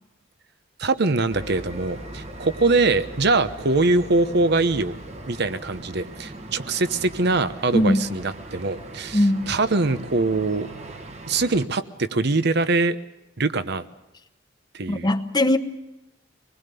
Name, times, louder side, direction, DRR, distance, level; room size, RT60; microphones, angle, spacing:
voice 1, 0.8-4.9 5.3-10.7 11.3-13.0 13.4-13.9 14.7-15.1, right 3 dB, 60° right, 12 dB, 1.0 m, -23 dB
sound 1, 1.3-11.7, right 1 dB, 35° right, 1.5 m, -39 dB
voice 2, 7.7-8.1 9.1-9.5 14.9-15.6, left 1 dB, 20° left, 9 dB, 1.1 m, -20 dB
25.5 x 20.5 x 6.9 m, 0.93 s
head